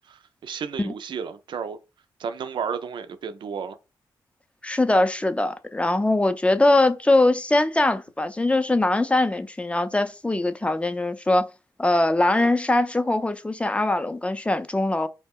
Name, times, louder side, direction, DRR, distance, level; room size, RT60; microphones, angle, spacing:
voice 1, 0.1-1.8 2.2-3.8 12.4-12.5, right 6 dB, 65° right, 0.4 m, -32 dB
voice 2, 4.6-11.5 11.8-15.1, left 2 dB, 15° left, 0.4 m, -22 dB
2.2 x 2.1 x 3.5 m
supercardioid pair, 45°, 9 cm